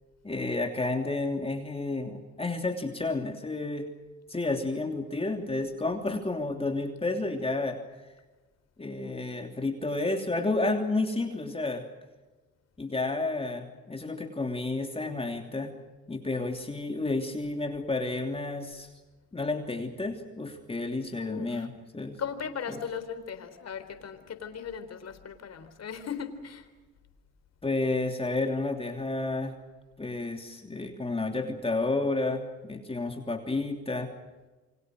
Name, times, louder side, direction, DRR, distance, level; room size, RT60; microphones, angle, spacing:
voice 1, 0.2-3.9 4.3-7.8 8.8-11.8 12.8-15.7 16.1-18.9 19.3-22.2 22.7-22.8 27.6-29.5 30.0-32.4 32.7-34.1, left 2 dB, 20° left, 4 dB, 3.0 m, -31 dB
voice 2, 21.2-21.7 22.2-26.7, left 7 dB, 55° left, 9 dB, 3.8 m, -38 dB
29.0 x 25.0 x 6.4 m, 1.2 s
cardioid pair, 90°, 30 cm